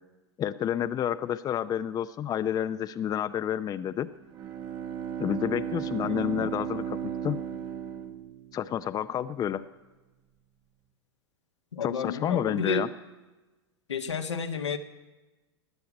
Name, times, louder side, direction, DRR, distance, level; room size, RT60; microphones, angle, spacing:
voice 1, 0.4-4.1 5.2-7.0 7.2-7.4 8.5-9.6 11.8-12.9, left 10 dB, 25° left, 12 dB, 0.6 m, -29 dB
Bowed string instrument, 4.2-8.9, right 9 dB, 35° right, 1.5 m, -35 dB
voice 2, 6.0-6.5 11.7-12.9 13.9-14.8, left 5 dB, 85° left, 5 dB, 1.3 m, -31 dB
19.0 x 7.1 x 9.4 m, 1.2 s
hypercardioid pair, 95°, 14 cm